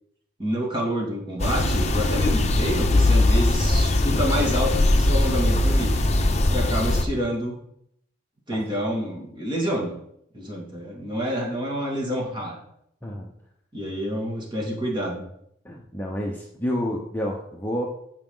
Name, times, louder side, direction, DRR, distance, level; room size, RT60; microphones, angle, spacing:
voice 1, 0.4-6.0 6.5-7.6 8.5-9.9 10.3-12.6 13.7-15.2, equal, 25° right, -1 dB, 2.4 m, -28 dB
sound 1, 1.4-7.0, left 2 dB, 35° left, 0.8 m, -20 dB
voice 2, 15.6-17.9, equal, 10° left, -2 dB, 0.9 m, -29 dB
15.0 x 5.0 x 3.9 m, 0.72 s
head